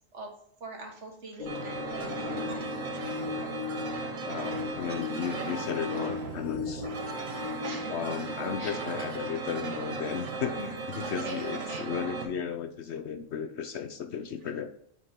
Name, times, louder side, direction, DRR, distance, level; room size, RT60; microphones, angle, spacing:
voice 1, 0.6-2.7 7.6-8.0 8.6-8.8 11.0-11.9, right 2 dB, 60° right, 1 dB, 1.9 m, -43 dB
Gong, 1.4-13.4, left 5 dB, 90° left, 1.8 m, -48 dB
sound 1, 1.5-12.3, right 4 dB, 80° right, 1.5 m, -36 dB
sound 2, 1.7-9.4 10.1-10.2 11.2-11.3, left 7 dB, 25° left, 1.4 m, -39 dB
voice 2, 4.2-6.9 7.9-14.7, left 7 dB, 65° left, 9 dB, 0.8 m, -35 dB
7.9 x 5.5 x 3.6 m, 0.70 s
omnidirectional pair, 1.4 m